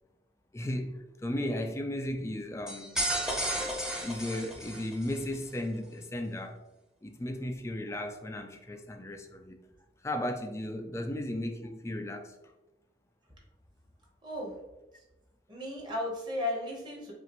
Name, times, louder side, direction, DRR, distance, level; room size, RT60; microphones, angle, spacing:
voice 1, 0.5-3.0 3.5-6.6 7.0-9.6 10.0-12.3, left 1 dB, 15° left, 0.3 m, -35 dB
sound 1, 2.7-5.2, right 1 dB, 5° right, 0.7 m, -33 dB
voice 2, 14.2-14.6 14.9-15.0 15.5-17.1, left 1 dB, 25° right, 1.1 m, -35 dB
5.7 x 2.5 x 3.0 m
head